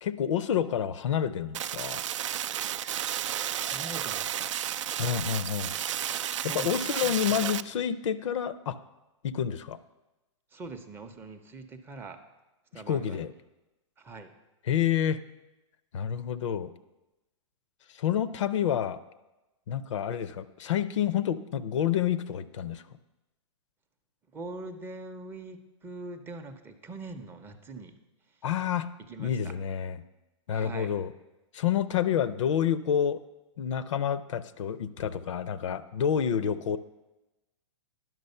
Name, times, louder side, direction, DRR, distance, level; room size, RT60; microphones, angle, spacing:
voice 1, 0.0-2.0 5.0-5.8 6.5-8.8 9.2-9.8 12.7-13.3 14.7-15.3 15.9-16.7 18.0-19.0 19.7-22.8 28.4-28.9 29.2-30.0 30.5-31.1 31.5-33.2 33.6-36.8, left 9 dB, 70° left, 15 dB, 0.5 m, -28 dB
sound 1, 1.5-7.6, right 10 dB, 80° right, 0.4 m, -32 dB
voice 2, 3.7-4.5 6.4-7.5 10.5-12.2 12.7-13.3 14.0-14.3 24.3-28.0 29.0-29.5 30.5-30.9, right 3 dB, 15° right, 7 dB, 0.5 m, -43 dB
11.0 x 6.2 x 5.4 m, 1.0 s
hypercardioid pair, 140°, 16 cm